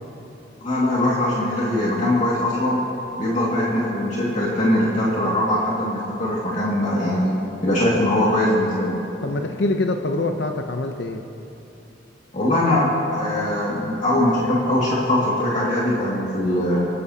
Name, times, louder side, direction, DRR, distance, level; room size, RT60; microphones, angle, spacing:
voice 1, 0.6-2.8 3.2-7.3 7.6-9.0 12.3-16.8, left 1 dB, 40° left, -6 dB, 2.1 m, -21 dB
voice 2, 9.2-11.2, left 2 dB, 65° left, 5 dB, 0.7 m, -24 dB
25.5 x 12.0 x 2.8 m, 2.9 s
head